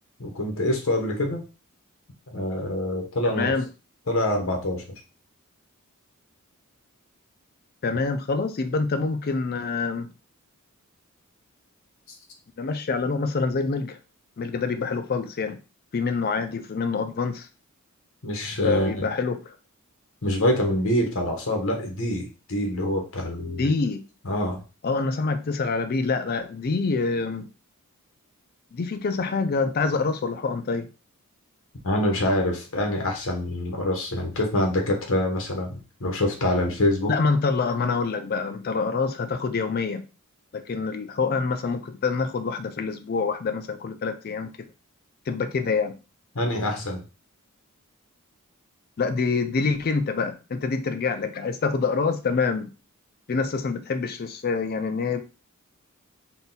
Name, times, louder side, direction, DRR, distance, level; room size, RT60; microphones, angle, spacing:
voice 1, 0.2-1.4 2.3-3.5 4.1-4.8 18.2-19.1 20.2-23.7 24.2-24.6 31.8-37.1 46.3-47.0, left 1 dB, 65° left, 2 dB, 1.1 m, -25 dB
voice 2, 3.2-3.7 7.8-10.1 12.6-14.0 14.4-15.6 15.9-17.5 18.6-19.6 23.6-24.0 24.8-27.5 28.7-30.9 37.1-40.0 40.5-44.5 45.3-46.0 49.0-52.7 53.3-55.2, left 4 dB, 45° left, 9 dB, 0.4 m, -26 dB
3.8 x 2.3 x 4.0 m, 0.32 s
head